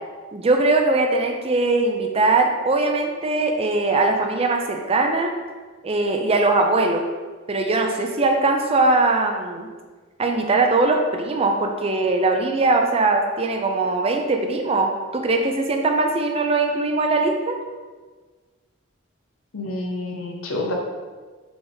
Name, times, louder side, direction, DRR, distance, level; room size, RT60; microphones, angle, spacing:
voice 1, 0.3-5.3 5.8-7.0 7.5-9.7 10.2-17.6, right 3 dB, 30° right, 3 dB, 0.4 m, -21 dB
voice 2, 19.5-20.7, left 2 dB, 75° left, 0 dB, 0.8 m, -28 dB
4.0 x 3.5 x 3.4 m, 1.4 s
head